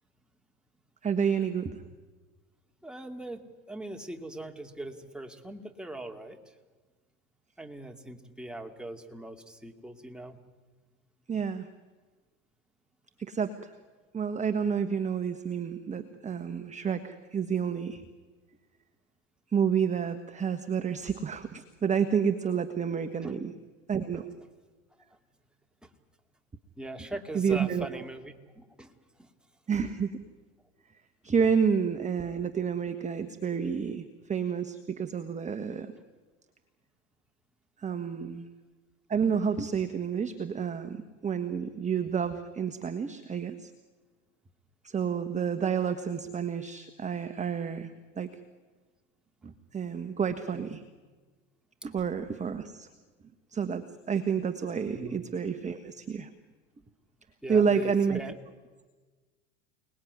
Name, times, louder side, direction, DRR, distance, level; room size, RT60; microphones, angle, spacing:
voice 1, 1.0-1.8 11.3-11.7 13.2-13.8 14.1-18.0 19.5-23.5 23.9-24.3 27.3-27.9 29.7-30.2 31.2-35.9 37.8-38.5 39.1-43.7 44.8-48.4 49.4-50.8 51.8-52.9 53.5-56.3 57.5-58.2, right 6 dB, 15° right, 9 dB, 1.4 m, -29 dB
voice 2, 2.8-6.5 7.6-10.4 23.2-23.3 24.1-24.2 25.8-25.9 26.8-28.9 29.2-29.3 50.5-50.7 55.0-55.2 57.4-58.4, right 1 dB, ahead, 3 dB, 2.6 m, -41 dB
29.5 x 19.5 x 9.7 m, 1.4 s
hypercardioid pair, 85°, 41 cm